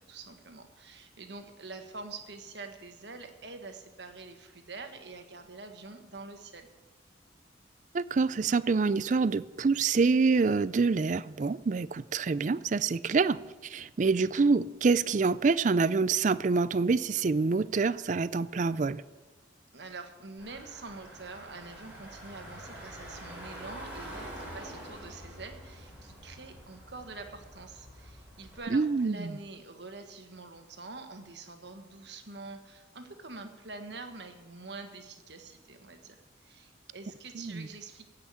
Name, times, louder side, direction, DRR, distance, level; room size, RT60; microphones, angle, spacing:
voice 1, 0.0-6.7 19.7-38.1, right 3 dB, 65° right, 1.4 m, -46 dB
voice 2, 7.9-19.0 28.7-29.3 37.4-37.7, right 4 dB, 40° right, 0.4 m, -26 dB
Car / Engine, 20.4-28.6, right 1 dB, 10° right, 4.4 m, -46 dB
16.0 x 5.7 x 8.2 m
head